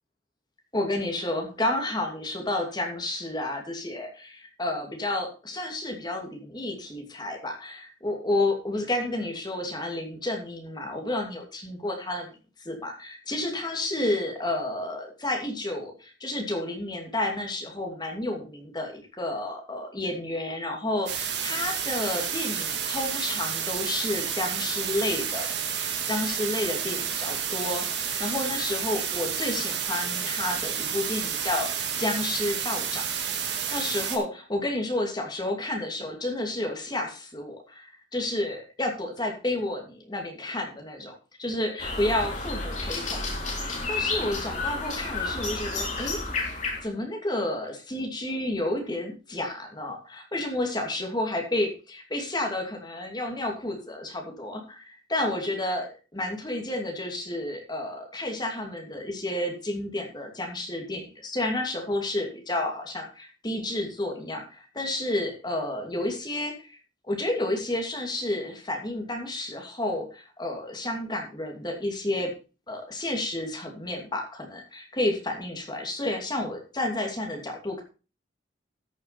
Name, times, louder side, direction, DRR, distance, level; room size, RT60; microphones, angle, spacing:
voice 1, 0.7-12.3 12.6-25.5 25.7-33.0 33.7-41.1 41.4-43.2 43.6-46.2 46.8-66.8 67.0-72.3 72.7-77.8, left 1 dB, 25° left, 2 dB, 2.6 m, -31 dB
sound 1, 21.1-34.2, right 8 dB, 65° right, 2.0 m, -30 dB
sound 2, 41.8-46.8, left 3 dB, 40° left, 3.3 m, -31 dB
13.5 x 6.6 x 4.2 m, 0.33 s
head